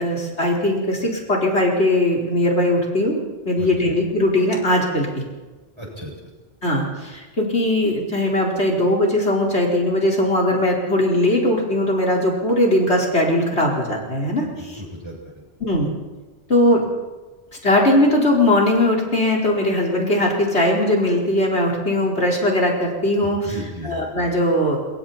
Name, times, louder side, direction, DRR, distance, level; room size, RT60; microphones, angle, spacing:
voice 1, 0.0-5.2 6.6-14.5 15.6-15.9 16.5-16.8 17.6-23.4 23.8-24.8, left 1 dB, 80° left, -2 dB, 5.0 m, -19 dB
voice 2, 3.6-3.9 5.8-6.1 14.6-15.4 23.2-24.1, equal, 25° right, -2 dB, 7.0 m, -35 dB
26.0 x 24.0 x 4.4 m, 1.2 s
omnidirectional pair, 1.1 m